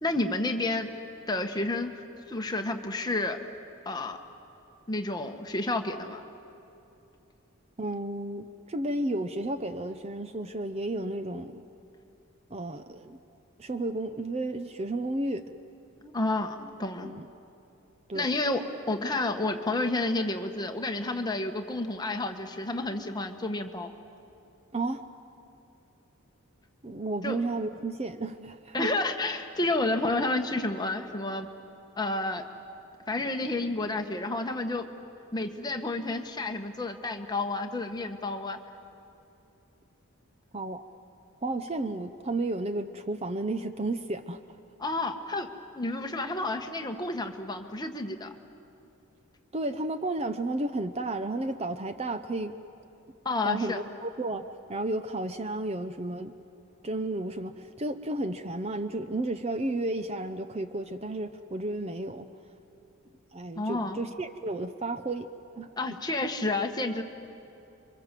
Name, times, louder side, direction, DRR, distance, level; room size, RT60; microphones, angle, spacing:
voice 1, 0.0-0.9 1.3-3.4 3.8-4.2 4.9-6.2 16.0-17.1 18.1-18.6 18.9-23.9 27.2-27.4 28.7-31.5 32.0-32.5 33.1-34.9 35.3-38.6 44.8-45.5 45.7-48.3 53.2-53.8 63.6-64.0 65.8-67.0, left 2 dB, 20° left, 5 dB, 1.3 m, -30 dB
voice 2, 7.8-11.6 12.5-13.2 13.6-15.4 17.0-17.3 18.1-18.4 24.7-25.1 26.8-28.9 40.5-40.8 41.4-44.4 49.5-52.5 53.4-56.3 56.8-62.3 63.3-65.3 65.6-65.7, right 2 dB, 30° right, 10 dB, 0.6 m, -32 dB
28.5 x 24.0 x 7.5 m, 2.8 s
head